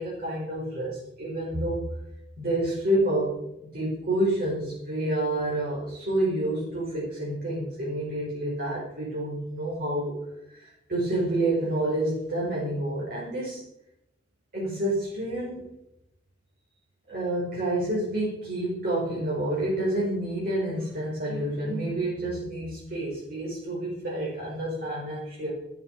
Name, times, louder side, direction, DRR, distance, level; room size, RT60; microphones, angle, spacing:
voice 1, 0.0-1.9 2.4-10.2 10.5-13.6 14.5-15.7 17.1-25.5, right 1 dB, 55° right, -6 dB, 5.1 m, -29 dB
13.0 x 11.0 x 5.5 m, 0.86 s
head